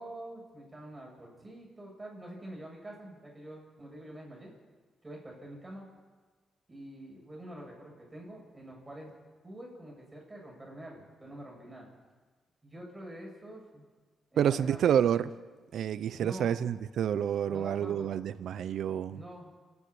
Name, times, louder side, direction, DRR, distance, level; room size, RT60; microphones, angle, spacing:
voice 1, 0.0-4.5 5.0-5.8 6.7-9.1 9.4-11.9 12.6-13.9 14.3-14.9 16.2-16.5 17.5-18.2 19.1-19.6, right 1 dB, 15° right, 7.6 m, -46 dB
voice 2, 14.4-15.3 15.7-19.2, right 9 dB, 75° right, 0.7 m, -28 dB
28.5 x 9.9 x 10.0 m
cardioid pair, 95°, 0 cm